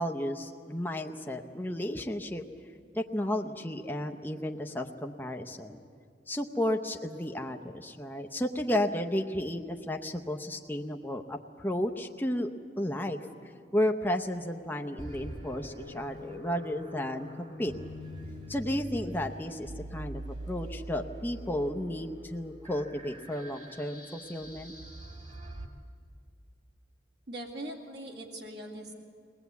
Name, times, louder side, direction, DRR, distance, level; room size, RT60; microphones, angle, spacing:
voice 1, 0.0-2.4 2.9-5.8 6.3-12.5 12.8-13.2 13.7-17.7 18.5-24.7, left 1 dB, 10° left, 3 dB, 0.7 m, -33 dB
sound 1, 15.0-25.7, equal, 40° right, 2.3 m, -43 dB
voice 2, 27.3-29.0, right 1 dB, 65° right, -1 dB, 2.3 m, -41 dB
22.5 x 19.0 x 8.2 m, 2.3 s
head